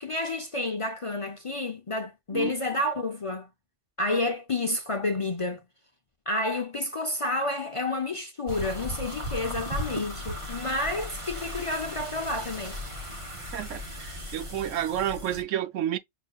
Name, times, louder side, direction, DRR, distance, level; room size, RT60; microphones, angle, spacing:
voice 1, 0.0-3.5 4.0-5.6 6.3-12.8, left 2 dB, 35° left, 0.5 m, -30 dB
sound 1, 8.5-15.4, left 1 dB, 30° right, 0.8 m, -37 dB
voice 2, 13.5-16.0, right 11 dB, 80° right, 1.0 m, -30 dB
5.9 x 2.7 x 2.3 m
omnidirectional pair, 1.3 m